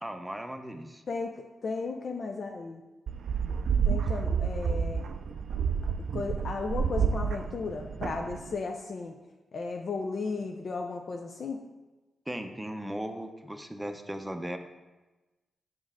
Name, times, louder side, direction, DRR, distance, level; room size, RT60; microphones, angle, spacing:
voice 1, 0.0-1.0 12.3-14.6, right 1 dB, 10° right, 6 dB, 0.6 m, -37 dB
voice 2, 1.1-2.8 3.9-5.1 6.1-9.2 9.5-11.6, left 4 dB, 60° left, 3 dB, 0.4 m, -35 dB
sound 1, 3.1-8.5, right 6 dB, 75° right, 0.3 m, -29 dB
5.9 x 5.3 x 3.6 m, 1.1 s
cardioid pair, 60°, 0 cm